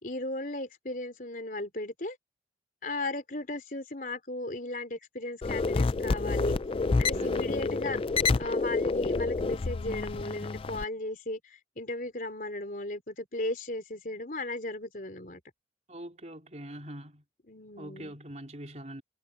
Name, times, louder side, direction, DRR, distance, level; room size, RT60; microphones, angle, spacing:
voice 1, 0.0-2.2 2.8-6.6 7.0-8.0 8.4-15.4 17.5-18.2, left 2 dB, 50° left, 3.8 m, -36 dB
sound 1, 5.4-10.8, left 4 dB, 30° left, 0.4 m, -28 dB
voice 2, 7.1-7.7 15.9-17.2 17.8-19.0, right 1 dB, 40° right, 3.9 m, -43 dB
head